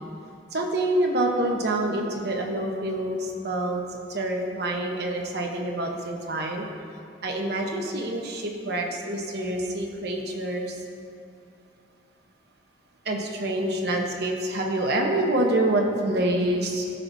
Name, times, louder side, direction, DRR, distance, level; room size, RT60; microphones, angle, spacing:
voice 1, 0.5-3.8 4.1-6.6 7.2-10.7 13.0-16.9, right 1 dB, 60° right, 1 dB, 1.0 m, -26 dB
14.5 x 6.0 x 2.7 m, 2.4 s
head